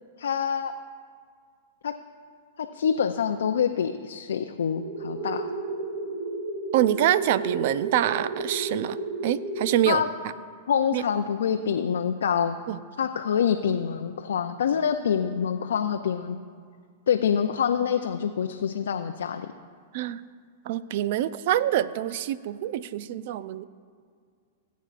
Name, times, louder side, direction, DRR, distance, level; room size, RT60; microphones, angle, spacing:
voice 1, 0.2-0.7 1.8-1.9 2.6-5.5 9.9-10.1 10.7-12.6 13.0-16.4 17.1-19.5, left 7 dB, 80° left, 5 dB, 0.4 m, -26 dB
sound 1, 4.7-9.7, right 3 dB, 80° right, 2.9 m, -32 dB
voice 2, 6.7-9.0 9.2-10.0 10.9-11.0 12.7-12.8 19.9-20.2 20.7-23.6, right 12 dB, 60° right, 16 dB, 0.4 m, -25 dB
18.0 x 8.2 x 2.5 m, 2.1 s
hypercardioid pair, 115°, 0 cm